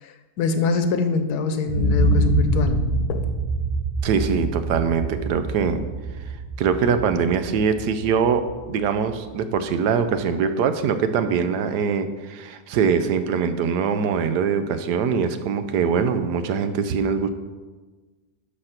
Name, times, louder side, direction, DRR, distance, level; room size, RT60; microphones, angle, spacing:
voice 1, 0.0-2.8 3.1-3.3, left 4 dB, 80° left, 8 dB, 1.3 m, -24 dB
sound 1, 1.6-9.5 10.0-10.1, right 2 dB, 70° right, 2.1 m, -25 dB
voice 2, 4.0-5.8 6.6-17.3, right 6 dB, 90° right, 10 dB, 1.3 m, -23 dB
11.5 x 4.3 x 5.8 m, 1.3 s
omnidirectional pair, 1.7 m